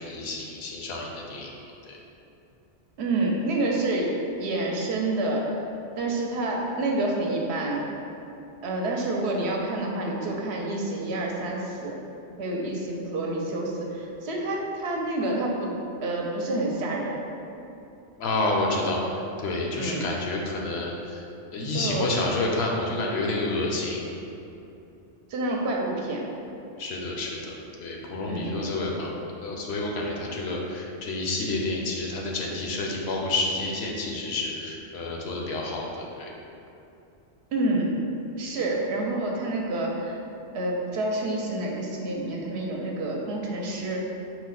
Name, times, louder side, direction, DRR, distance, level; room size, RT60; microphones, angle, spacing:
voice 1, 0.0-1.5 1.8-2.0 18.2-21.2 21.5-24.0 26.8-36.3, left 2 dB, 70° left, -1 dB, 0.8 m, -29 dB
voice 2, 3.0-4.1 4.4-5.6 6.0-7.8 8.6-11.9 12.4-15.7 16.0-17.2 19.8-20.1 21.7-22.1 25.3-26.3 28.3-28.5 37.5-37.9 38.4-40.2 40.5-44.0, right 2 dB, 75° right, -1 dB, 0.8 m, -28 dB
4.5 x 2.1 x 3.8 m, 2.8 s
omnidirectional pair, 1.1 m